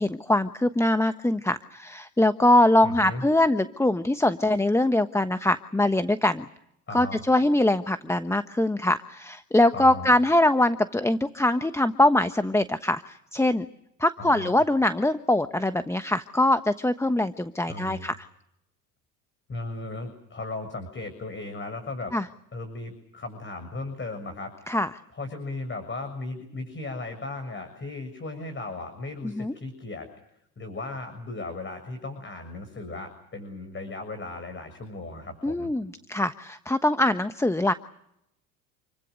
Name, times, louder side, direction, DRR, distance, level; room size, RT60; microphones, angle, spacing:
voice 1, 0.0-6.5 6.9-13.7 14.0-18.1 22.1-22.3 24.7-24.9 29.2-29.5 35.4-37.7, left 1 dB, 5° left, 11 dB, 1.2 m, -23 dB
voice 2, 2.8-3.2 6.9-7.2 9.7-10.1 14.2-14.5 17.7-18.1 19.5-22.1 22.5-24.8 25.1-30.1 30.6-35.7, left 2 dB, 25° left, 8 dB, 7.1 m, -36 dB
29.0 x 24.0 x 6.6 m, 0.78 s
hypercardioid pair, 75°, 46 cm